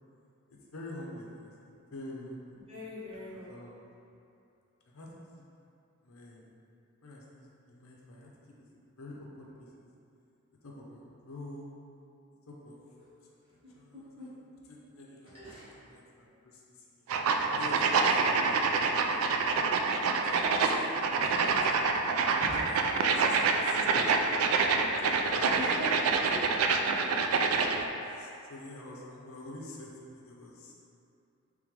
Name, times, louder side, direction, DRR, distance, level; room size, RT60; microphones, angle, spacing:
voice 1, 0.5-1.5 1.9-2.6 3.3-3.8 4.9-5.1 5.4-5.5 6.0-6.5 7.0-8.3 8.6-8.7 9.0-9.7 10.6-11.7 12.5-12.8 13.3-13.4 13.7-14.3 14.7-17.1 17.6-19.2 19.7-19.8 20.2-21.8 22.4-24.9 25.3-25.6 27.5-27.6 28.1-30.8, left 1 dB, 80° left, -3 dB, 0.6 m, -47 dB
voice 2, 2.7-3.7 13.6-13.7 14.1-14.3 15.3-15.8 25.5-27.1, equal, 25° right, -11 dB, 1.3 m, -42 dB
sound 1, 17.1-27.9, right 4 dB, 85° right, 0.3 m, -27 dB
3.6 x 3.4 x 3.2 m, 2.6 s
head